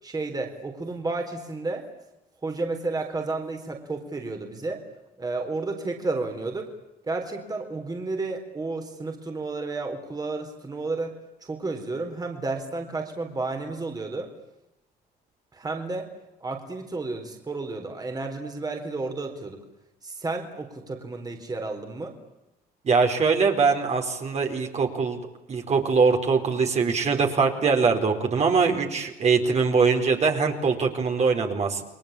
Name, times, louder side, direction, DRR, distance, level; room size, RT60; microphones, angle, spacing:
voice 1, 0.0-1.9 2.4-4.8 5.2-6.7 7.0-14.3 15.5-16.1 16.4-19.6 20.0-22.2, right 3 dB, 20° right, 4 dB, 4.1 m, -32 dB
voice 2, 22.8-25.2 25.5-31.8, right 5 dB, 40° right, 3 dB, 4.6 m, -22 dB
30.0 x 22.0 x 8.7 m, 0.93 s
cardioid pair, 110°, 17 cm